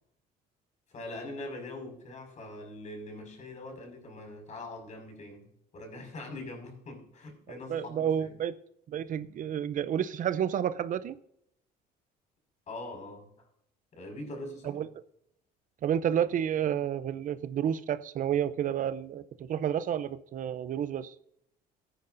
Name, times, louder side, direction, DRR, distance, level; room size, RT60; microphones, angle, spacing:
voice 1, 0.9-5.5 5.7-8.4 12.7-13.5 13.9-14.9, left 2 dB, 45° left, 3 dB, 5.7 m, -42 dB
voice 2, 7.7-8.5 8.9-11.2 14.7-14.9 15.8-21.1, right 9 dB, 50° right, 15 dB, 0.6 m, -30 dB
18.5 x 9.8 x 2.6 m, 0.74 s
cardioid pair, 110°, 17 cm